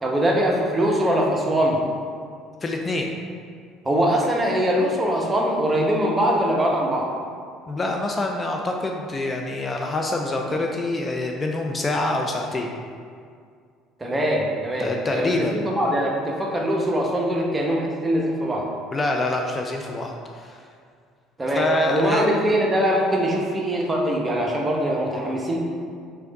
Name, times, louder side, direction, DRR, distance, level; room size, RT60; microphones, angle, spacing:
voice 1, 0.0-1.8 3.8-7.1 14.0-18.7 21.4-25.6, equal, 20° right, -1 dB, 0.8 m, -22 dB
voice 2, 2.6-3.1 7.7-12.7 14.8-15.6 18.9-20.6 21.5-22.3, left 2 dB, 25° left, 1 dB, 0.4 m, -26 dB
3.4 x 3.4 x 3.9 m, 2.2 s
hypercardioid pair, 70°, 0 cm